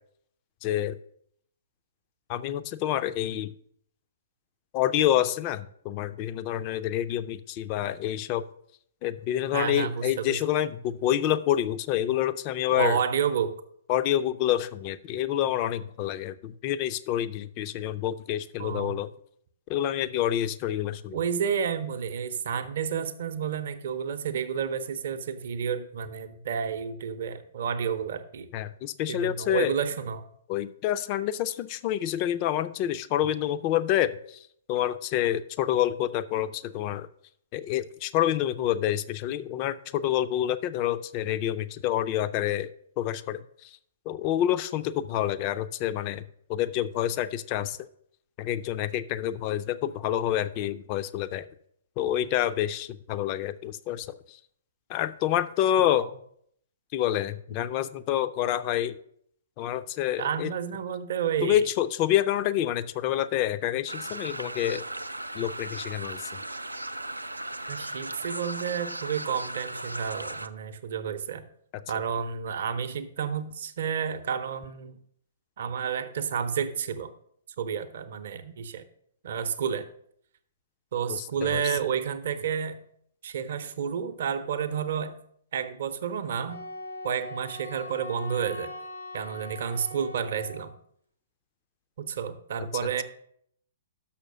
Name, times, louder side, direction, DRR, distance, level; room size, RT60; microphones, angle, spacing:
voice 1, 0.6-1.0 2.3-3.5 4.7-8.4 9.0-13.0 13.9-19.1 19.7-21.2 28.5-29.7 30.5-34.4 34.7-37.1 37.5-42.7 43.0-43.8 44.1-46.2 46.5-47.8 48.4-51.5 52.0-54.4 54.9-56.1 56.9-59.0 59.6-60.5 61.4-64.8 65.3-66.3 81.1-81.6, left 12 dB, 35° left, 13 dB, 0.4 m, -28 dB
voice 2, 9.5-10.4 12.7-13.5 18.6-19.0 21.1-28.5 29.1-30.2 55.8-56.1 60.2-61.7 67.7-71.5 71.9-75.0 75.6-77.1 77.6-78.8 79.2-79.9 80.9-82.8 83.2-85.2 85.5-86.6 87.0-88.7 89.1-90.7 92.0-93.0, right 7 dB, 55° right, 8 dB, 0.7 m, -30 dB
sound 1, 63.9-70.5, right 1 dB, 85° right, 0.4 m, -37 dB
Wind instrument woodwind instrument, 86.5-90.7, left 1 dB, 85° left, 1.2 m, -41 dB
6.5 x 5.7 x 6.3 m, 0.67 s
figure-of-eight pair, 115°, 0 cm